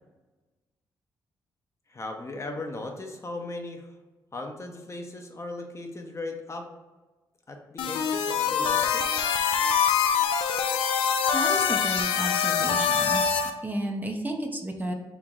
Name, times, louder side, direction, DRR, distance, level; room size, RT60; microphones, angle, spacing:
voice 1, 1.9-3.9 4.3-6.7 7.5-9.0, left 2 dB, 35° left, 3 dB, 0.7 m, -37 dB
sound 1, 7.8-13.5, left 7 dB, 85° left, 0.4 m, -24 dB
voice 2, 11.3-13.3 13.6-14.9, right 1 dB, 20° right, 3 dB, 0.7 m, -32 dB
3.4 x 3.1 x 3.8 m, 1.2 s
supercardioid pair, 55°, 9 cm